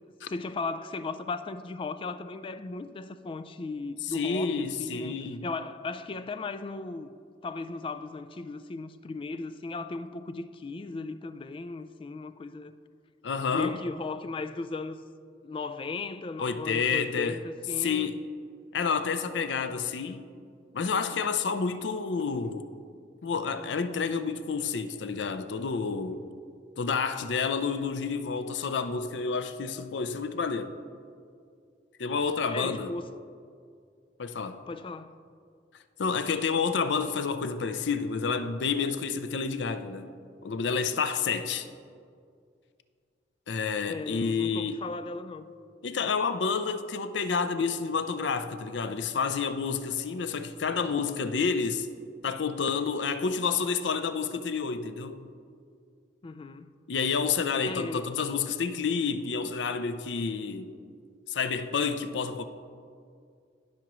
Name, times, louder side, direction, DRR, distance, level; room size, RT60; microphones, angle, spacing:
voice 1, 0.3-7.1 7.4-12.7 13.5-15.0 15.4-18.1 32.5-33.1 34.7-35.2 43.9-45.4 56.2-56.7 57.7-58.1, left 3 dB, 30° left, 0.3 m, -36 dB
voice 2, 4.0-5.4 13.2-13.8 16.4-17.4 17.8-18.2 18.7-20.3 20.7-22.7 23.2-26.3 26.8-30.7 32.0-32.9 34.2-34.6 36.0-40.1 40.4-41.7 43.5-44.8 45.8-51.9 52.2-55.3 56.9-60.8 61.3-62.5, left 5 dB, 85° left, 0.5 m, -29 dB
17.5 x 6.0 x 3.1 m
head